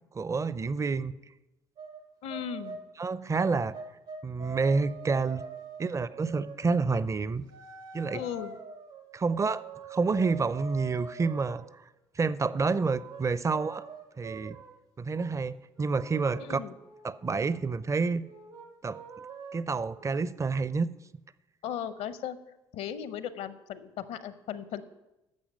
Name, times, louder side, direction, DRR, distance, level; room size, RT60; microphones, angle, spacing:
voice 1, 0.1-1.1 3.0-3.8 4.2-5.4 5.8-7.5 7.9-8.2 9.1-11.6 12.2-13.8 14.2-14.6 15.0-16.6 17.0-18.3 18.8-19.0 19.5-20.9, right 4 dB, 25° right, 17 dB, 0.5 m, -28 dB
sound 1, 1.8-2.0 2.3-2.9 3.4-6.7 7.5-11.7 12.7-14.7 15.1-15.4 15.8-17.7 18.2-20.2, right 5 dB, 80° right, 1.5 m, -45 dB
voice 2, 2.2-2.8 8.1-8.6 16.4-16.7 21.6-22.4 22.7-24.8, left 9 dB, 70° left, 14 dB, 0.7 m, -37 dB
10.5 x 7.1 x 5.3 m, 0.94 s
hypercardioid pair, 50°, 12 cm